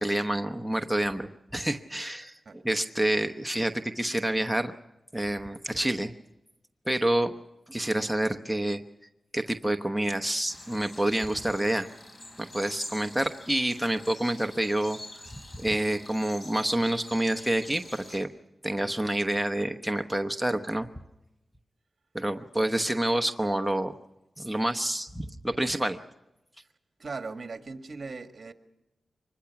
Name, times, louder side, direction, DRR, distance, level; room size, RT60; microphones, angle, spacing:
voice 1, 0.0-4.7 5.1-6.1 6.9-7.3 7.7-8.8 9.3-11.9 12.4-15.0 15.5-18.3 18.6-20.9 22.1-23.9 24.4-26.0, right 1 dB, ahead, 5 dB, 1.0 m, -28 dB
sound 1, 10.5-18.2, left 1 dB, 40° left, 4.9 m, -46 dB
voice 2, 27.0-28.5, right 4 dB, 50° right, 7 dB, 1.8 m, -38 dB
24.5 x 21.0 x 5.9 m, 0.93 s
wide cardioid pair, 95°, 0 cm